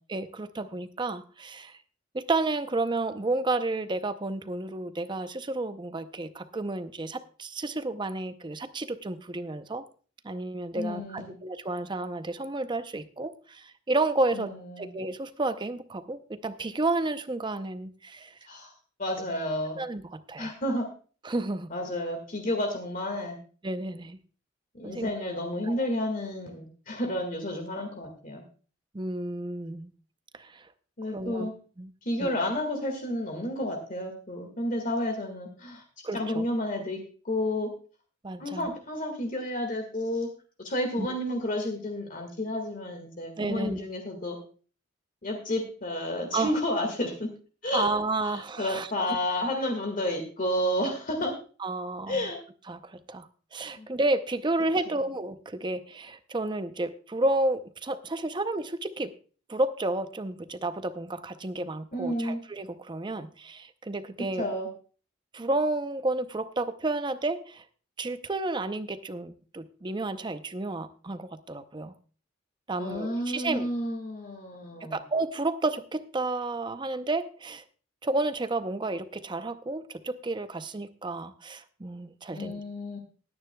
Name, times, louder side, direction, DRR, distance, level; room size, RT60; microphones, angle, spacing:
voice 1, 0.1-1.8 2.1-9.8 10.2-14.5 14.8-18.3 19.8-20.5 21.2-21.7 23.6-24.2 24.8-25.1 25.6-25.8 28.9-29.9 30.3-30.7 31.1-31.9 32.2-32.3 36.0-36.5 38.2-38.7 41.0-41.1 43.4-43.8 46.3-46.5 47.7-49.2 51.6-52.3 52.7-59.1 59.5-64.5 65.3-67.6 68.0-71.9 72.7-73.7 74.8-77.6 78.0-82.6, right 2 dB, 25° right, 11 dB, 0.6 m, -31 dB
voice 2, 10.7-11.4 14.3-14.9 18.5-18.7 19.0-19.8 20.4-20.8 21.7-23.4 24.7-28.4 31.0-31.5 32.0-35.8 36.1-37.0 37.2-37.7 38.4-40.3 40.6-44.4 45.2-47.3 47.6-47.9 48.2-51.3 52.1-52.4 53.8-53.9 54.9-55.0 61.9-62.4 64.4-64.7 72.7-75.0 82.3-83.0, left 1 dB, 45° left, 3 dB, 1.8 m, -31 dB
19.5 x 9.6 x 2.2 m, 0.39 s
head